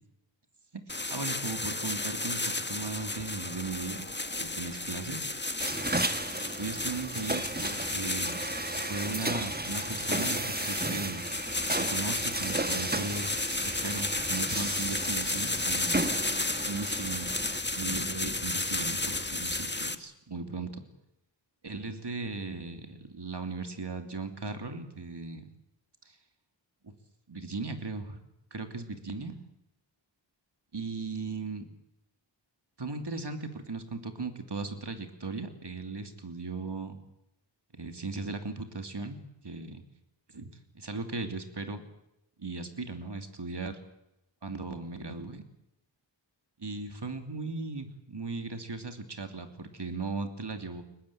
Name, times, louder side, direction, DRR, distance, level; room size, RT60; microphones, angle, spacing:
voice 1, 0.7-2.4 2.7-4.1 4.4-5.2 6.6-8.4 8.9-11.2 11.8-13.3 13.6-16.1 16.6-17.3 17.8-20.7 21.6-25.5 26.1-26.2 26.8-26.9 27.3-28.2 28.5-29.3 30.7-31.7 32.8-37.0 37.7-39.2 39.4-39.8 40.3-41.8 42.4-43.8 44.4-45.4 46.6-50.8, right 3 dB, 60° right, 7 dB, 3.0 m, -37 dB
sound 1, 0.9-20.0, left 2 dB, 25° left, 1.4 m, -33 dB
sound 2, 5.6-17.6, right 2 dB, 20° right, 1.4 m, -34 dB
23.5 x 20.5 x 8.7 m, 0.84 s
wide cardioid pair, 60°, 46 cm